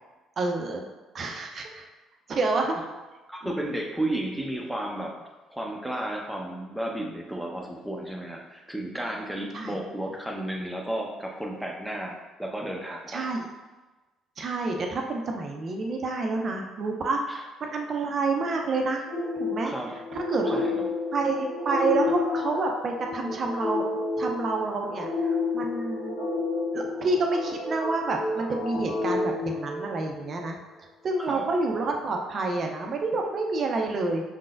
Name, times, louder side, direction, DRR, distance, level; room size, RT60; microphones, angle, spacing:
voice 1, 0.4-0.8 1.1-1.9 2.3-2.7 3.4-3.5 9.5-9.8 13.1-13.4 14.4-19.1 19.4-19.7 20.1-20.6 21.1-23.9 24.2-26.2 26.7-34.2, right 3 dB, 45° right, 2 dB, 0.6 m, -28 dB
voice 2, 3.3-13.2 17.3-17.4 19.6-19.9 20.5-20.8 31.2-31.5, right 1 dB, 5° right, 0 dB, 0.9 m, -33 dB
sound 1, 19.1-30.4, left 3 dB, 75° left, 1.0 m, -30 dB
5.5 x 3.8 x 2.5 m, 1.2 s
hypercardioid pair, 50°, 0 cm